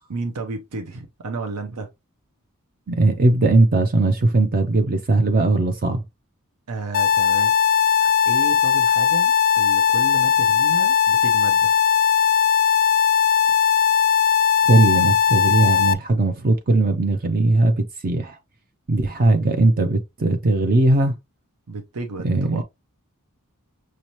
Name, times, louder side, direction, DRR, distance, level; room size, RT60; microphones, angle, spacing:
voice 1, 0.1-1.9 6.7-7.5 8.0-11.8 21.7-22.6, right 3 dB, 85° right, 0.7 m, -32 dB
voice 2, 2.9-6.0 14.6-18.4 18.9-21.2 22.2-22.6, right 2 dB, 40° right, 0.5 m, -19 dB
sound 1, 6.9-15.9, left 7 dB, 40° left, 0.4 m, -18 dB
6.3 x 2.8 x 3.0 m
head